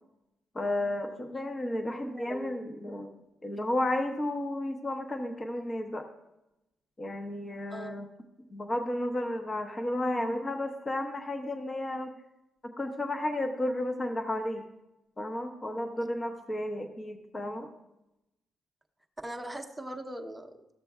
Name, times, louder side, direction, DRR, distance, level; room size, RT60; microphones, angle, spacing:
voice 1, 0.5-6.1 7.0-8.1 8.5-12.1 12.6-14.6 15.2-17.7, left 1 dB, 25° left, 5 dB, 0.8 m, -33 dB
voice 2, 1.8-2.5 7.7-8.0 16.0-16.1 19.2-20.6, right 1 dB, 5° right, 3 dB, 0.8 m, -40 dB
14.0 x 6.7 x 2.4 m, 0.92 s
cardioid pair, 90°, 0 cm